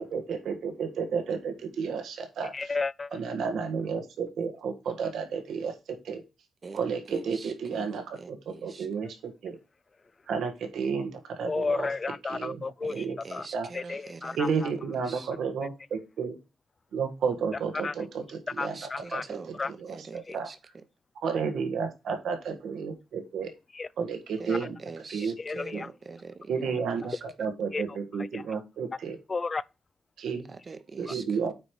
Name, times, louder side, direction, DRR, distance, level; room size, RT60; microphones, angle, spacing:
voice 1, 0.0-2.7 3.1-6.2 6.7-9.6 10.3-11.9 12.3-12.6 12.9-13.2 13.5-13.7 14.4-16.4 16.9-20.5 21.2-23.5 24.0-24.8 25.1-25.3 25.7-25.8 26.5-29.2 30.2-30.6 31.0-31.5, right 5 dB, 80° right, 1.4 m, -32 dB
voice 2, 2.5-3.2 11.4-13.0 13.3-13.5 13.7-14.5 17.8-17.9 18.6-19.2 19.6-19.7 20.3-20.4 23.8-23.9 24.5-24.6 25.2-25.9 27.7-27.8 28.3-28.4 29.3-29.6 31.1-31.2, left 4 dB, 35° left, 0.3 m, -32 dB
voice 3, 6.6-8.9 12.9-14.7 15.1-15.3 18.6-20.6 24.4-27.2 30.5-31.5, right 4 dB, 40° right, 1.0 m, -44 dB
9.2 x 3.1 x 5.0 m
cardioid pair, 75°, 0 cm